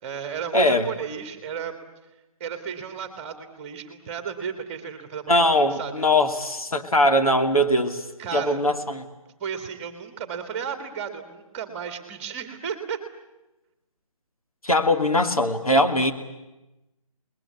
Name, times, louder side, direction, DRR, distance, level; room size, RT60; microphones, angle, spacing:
voice 1, 0.0-1.7 2.4-5.5 5.8-5.9 8.2-8.6 9.4-13.0, right 7 dB, 20° right, 8 dB, 2.1 m, -33 dB
voice 2, 0.5-0.9 5.3-8.0 8.3-9.1 14.6-16.1, left 1 dB, 80° left, 5 dB, 2.8 m, -21 dB
28.5 x 21.0 x 8.6 m, 1.0 s
figure-of-eight pair, 150°, 18 cm